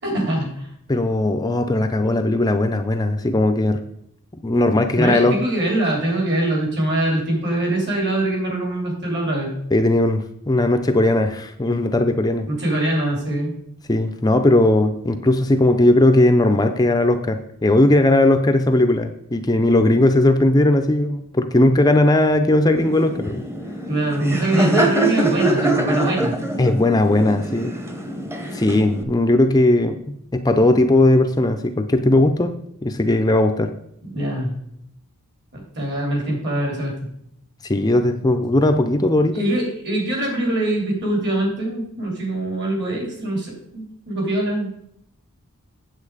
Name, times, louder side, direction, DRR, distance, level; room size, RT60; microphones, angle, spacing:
voice 1, 0.0-0.7 4.9-9.5 12.5-13.5 23.9-26.3 34.0-34.5 35.5-37.1 39.3-44.7, right 1 dB, 50° right, 0 dB, 3.5 m, -23 dB
voice 2, 0.9-3.8 4.4-5.4 9.7-12.5 13.9-23.5 26.6-27.7 28.5-32.5 32.8-33.7 37.6-39.5, left 1 dB, 15° left, 7 dB, 0.5 m, -18 dB
Laughter, 22.8-29.0, right 2 dB, 10° right, 0.9 m, -24 dB
8.6 x 7.8 x 4.9 m, 0.73 s
head